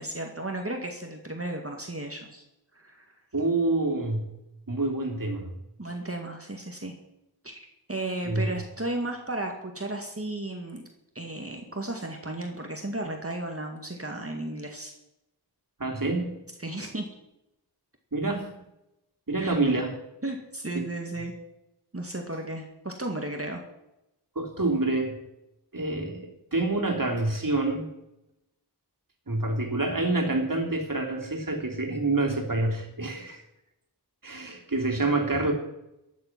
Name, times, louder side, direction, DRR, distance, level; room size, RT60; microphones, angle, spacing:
voice 1, 0.0-2.4 2.7-3.0 5.8-6.9 7.4-7.6 7.9-10.8 11.2-14.9 16.6-17.1 19.4-19.5 20.2-21.3 21.9-23.6, right 1 dB, 35° right, 2 dB, 2.0 m, -34 dB
voice 2, 3.3-4.3 4.7-5.5 8.2-8.5 15.8-16.5 18.1-18.6 19.3-20.0 24.3-25.2 25.7-27.9 29.3-33.4 34.2-35.5, right 2 dB, 50° right, 1 dB, 3.2 m, -27 dB
16.0 x 10.5 x 6.0 m, 0.88 s
wide cardioid pair, 55°, 41 cm